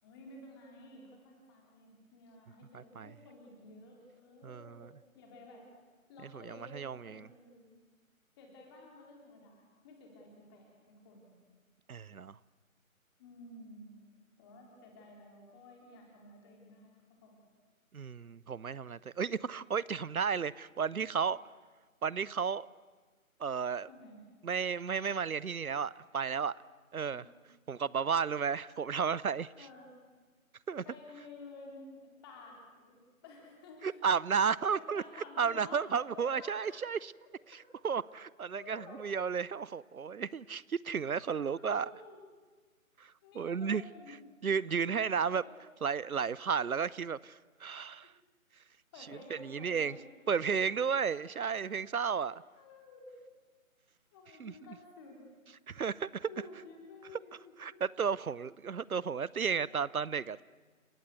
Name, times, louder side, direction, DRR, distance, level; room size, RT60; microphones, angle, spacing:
voice 1, 0.0-4.8 5.1-5.7 6.1-7.8 8.4-11.3 13.2-13.9 14.4-17.4 23.9-24.2 27.0-27.2 29.6-29.9 30.8-33.0 33.2-34.0 34.6-36.6 37.5-37.8 38.5-39.0 41.2-42.2 43.2-44.2 45.0-45.5 48.0-48.1 48.9-50.1 50.7-51.1 52.1-52.2 52.6-53.2 54.1-55.2 56.2-57.8, left 3 dB, 15° left, 0 dB, 4.0 m, -53 dB
voice 2, 2.7-3.1 4.4-4.9 6.3-7.3 11.9-12.4 17.9-21.4 22.0-22.7 23.4-23.9 24.4-26.5 26.9-27.2 27.7-29.5 30.7-30.8 33.8-35.0 35.4-37.1 37.8-41.9 43.0-43.8 44.4-45.4 45.8-48.1 49.3-50.0 50.3-52.4 54.4-54.5 55.7-56.3 57.6-60.4, right 6 dB, 80° right, 21 dB, 0.7 m, -33 dB
29.5 x 15.5 x 8.3 m, 1.4 s
figure-of-eight pair, 155°, 42 cm